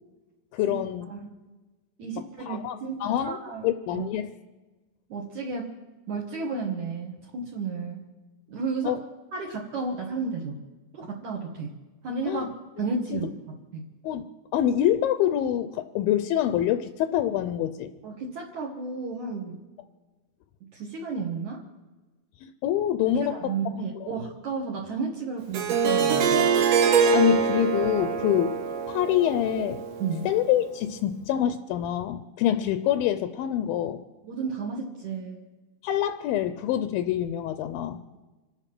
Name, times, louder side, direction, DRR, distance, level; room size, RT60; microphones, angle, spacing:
voice 1, 0.5-1.1 2.5-3.4 3.6-4.3 8.8-9.0 12.3-12.5 13.1-13.2 14.0-14.2 14.5-17.9 22.4-23.6 24.0-24.1 27.1-28.6 28.9-29.8 30.3-34.0 35.8-38.0, left 11 dB, 80° left, 10 dB, 2.3 m, -26 dB
voice 2, 2.0-4.1 5.1-5.7 6.1-8.0 8.5-8.9 9.3-10.6 10.9-11.7 12.0-13.3 13.7-13.9 18.0-19.6 20.6-21.6 23.0-26.5 30.0-30.3 34.2-35.4, right 4 dB, 60° right, -1 dB, 2.5 m, -32 dB
Harp, 25.5-30.5, right 6 dB, 75° right, 1.6 m, -24 dB
26.0 x 9.0 x 6.0 m, 1.2 s
omnidirectional pair, 4.4 m